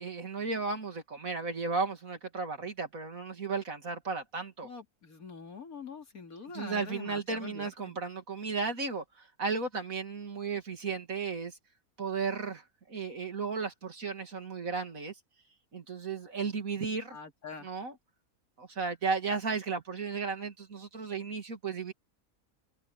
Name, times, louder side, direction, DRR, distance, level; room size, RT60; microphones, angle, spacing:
voice 1, 0.0-4.7 6.5-11.6 12.0-15.1 15.7-17.2 17.6-17.9 18.6-21.9, right 4 dB, 65° right, 3.0 m, -34 dB
voice 2, 4.6-7.9 17.1-17.7, left 5 dB, 75° left, 3.3 m, -45 dB
omnidirectional pair, 1.6 m